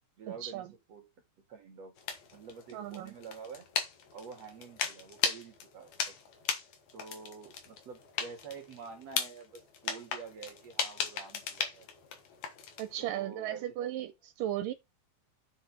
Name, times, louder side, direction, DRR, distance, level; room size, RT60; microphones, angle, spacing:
voice 1, 0.2-1.1 1.5-1.9 2.3-3.7 4.1-6.1 6.9-11.9 13.0-13.9, right 5 dB, 50° right, 3.3 m, -47 dB
sound 1, 2.0-13.0, left 7 dB, 65° left, 2.7 m, -37 dB
voice 2, 2.7-3.1 12.8-14.7, right 12 dB, 90° right, 2.7 m, -36 dB
7.5 x 6.8 x 4.9 m
omnidirectional pair, 3.8 m